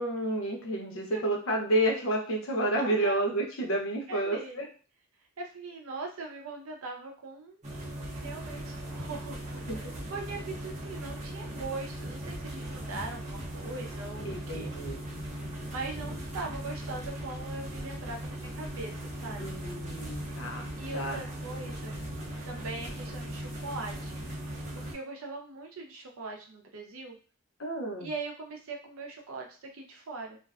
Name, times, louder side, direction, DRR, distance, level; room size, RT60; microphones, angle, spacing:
voice 1, 0.0-4.7 9.7-9.8 14.2-15.0 19.4-20.7 20.9-21.2 27.6-28.1, right 1 dB, 70° left, 1 dB, 0.6 m, -30 dB
voice 2, 2.8-3.2 4.1-4.6 5.4-7.7 8.1-14.7 15.7-19.4 20.7-21.9 22.4-24.1 24.7-27.2 28.0-30.4, right 3 dB, 75° right, 1 dB, 0.5 m, -41 dB
sound 1, 7.6-24.9, right 1 dB, 35° right, 0.6 m, -38 dB
2.5 x 2.1 x 2.3 m, 0.38 s
head